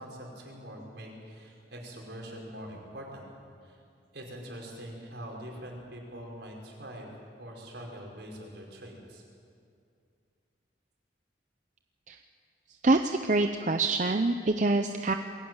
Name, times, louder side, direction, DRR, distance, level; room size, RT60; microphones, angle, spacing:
voice 1, 0.0-3.3 3.6-3.8 4.1-7.1 7.4-9.2, equal, 70° right, 0 dB, 4.9 m, -43 dB
voice 2, 12.8-15.1, right 2 dB, 45° right, 6 dB, 0.7 m, -25 dB
22.0 x 17.0 x 9.0 m, 2.4 s
head